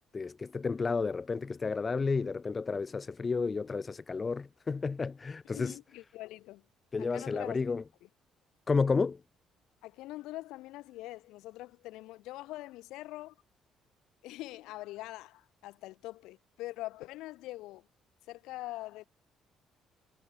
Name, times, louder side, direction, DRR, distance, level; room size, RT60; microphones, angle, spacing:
voice 1, 0.1-5.8 6.9-7.8 8.7-9.2, left 4 dB, 30° left, 1.5 m, -31 dB
voice 2, 5.5-6.6 7.0-7.6 9.8-13.3 14.2-17.9 18.3-19.0, left 17 dB, 85° left, 6.0 m, -43 dB
cardioid pair, 90°, 0 cm